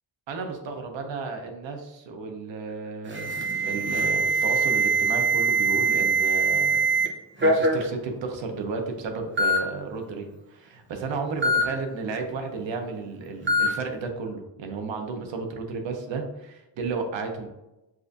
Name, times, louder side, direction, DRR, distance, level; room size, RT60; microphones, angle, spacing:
voice 1, 0.3-6.9 7.4-17.5, right 4 dB, 85° right, 3 dB, 0.8 m, -33 dB
Alarm, 3.1-7.1 7.4-7.8 8.7-8.8 9.4-9.6 11.4-11.6 13.5-13.7, right 3 dB, 25° right, 0.7 m, -22 dB
7.4 x 2.5 x 2.6 m, 0.98 s
wide cardioid pair, 160°, 43 cm